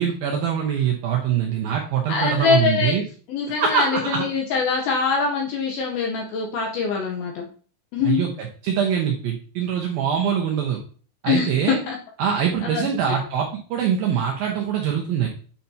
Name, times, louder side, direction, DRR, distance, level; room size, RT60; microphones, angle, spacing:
voice 1, 0.0-3.0 3.6-4.2 8.0-10.8 11.2-11.8 12.2-15.3, right 8 dB, 90° right, 0 dB, 2.0 m, -23 dB
voice 2, 2.1-2.9 3.3-7.5 7.9-8.2 11.2-12.0 12.4-13.2, left 5 dB, 80° left, 1 dB, 2.1 m, -24 dB
9.1 x 5.8 x 2.8 m, 0.41 s
omnidirectional pair, 5.5 m